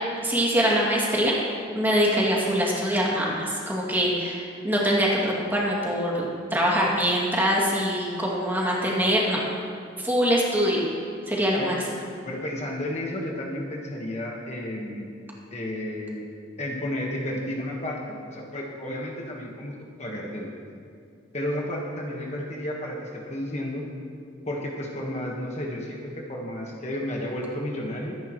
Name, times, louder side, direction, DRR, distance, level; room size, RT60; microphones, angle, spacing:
voice 1, 0.2-1.4 1.7-9.4 10.0-10.9 11.3-11.7, equal, 10° right, -4 dB, 2.4 m, -23 dB
voice 2, 12.2-15.1 15.5-16.2 16.6-20.5 21.3-23.8 24.4-28.2, left 1 dB, 35° left, -2 dB, 1.4 m, -32 dB
24.0 x 10.5 x 3.1 m, 2.3 s
head